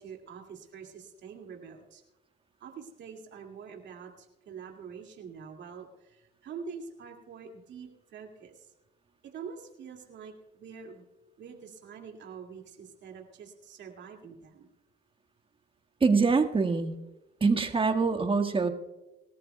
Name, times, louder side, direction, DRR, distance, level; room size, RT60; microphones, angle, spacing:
voice 1, 0.0-2.0 2.6-8.7 9.2-11.0 11.4-14.7, right 6 dB, 65° right, 2 dB, 2.3 m, -45 dB
voice 2, 16.0-17.0 17.4-18.7, right 4 dB, 25° right, 6 dB, 1.6 m, -24 dB
23.5 x 13.5 x 2.3 m, 1.0 s
supercardioid pair, 80°, 20 cm